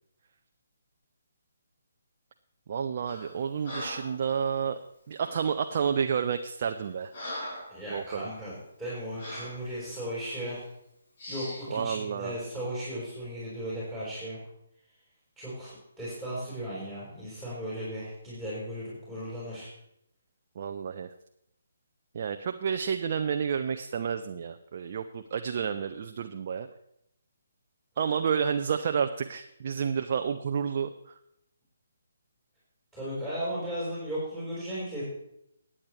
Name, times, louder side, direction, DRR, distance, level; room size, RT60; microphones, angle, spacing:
voice 1, 2.7-4.8 5.1-7.1 7.9-8.3 11.7-12.3 20.6-21.1 22.1-26.7 28.0-31.2, right 7 dB, 40° right, 6 dB, 0.5 m, -30 dB
Breathing, 3.1-3.3 3.6-4.2 5.2-5.5 6.1-6.3 6.7-7.8 8.2-8.4 9.2-9.6 10.3-10.5 11.2-11.7, left 1 dB, 45° left, 5.1 m, -40 dB
voice 2, 7.7-10.6 11.3-14.4 15.4-19.7 32.9-35.0, equal, 5° left, -10 dB, 4.6 m, -36 dB
20.0 x 8.6 x 3.3 m, 0.80 s
figure-of-eight pair, 140°, 0 cm